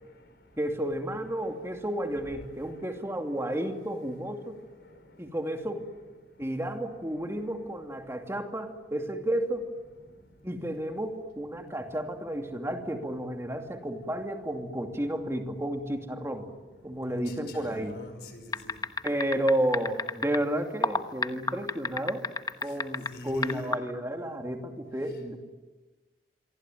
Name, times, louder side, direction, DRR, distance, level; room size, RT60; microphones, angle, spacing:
voice 1, 0.0-0.5 4.8-5.2 10.1-10.2 17.1-18.8 22.7-22.8 23.1-23.7, left 2 dB, 60° left, 8 dB, 5.3 m, -45 dB
voice 2, 0.6-4.6 5.2-5.9 6.4-9.7 10.4-16.5 16.8-18.0 19.0-22.3 22.6-25.4, right 1 dB, 15° right, 4 dB, 2.6 m, -32 dB
sound 1, 18.5-20.4 20.8-23.1 23.4-23.8, left 4 dB, 20° left, 1.1 m, -28 dB
27.0 x 24.0 x 9.2 m, 1.2 s
head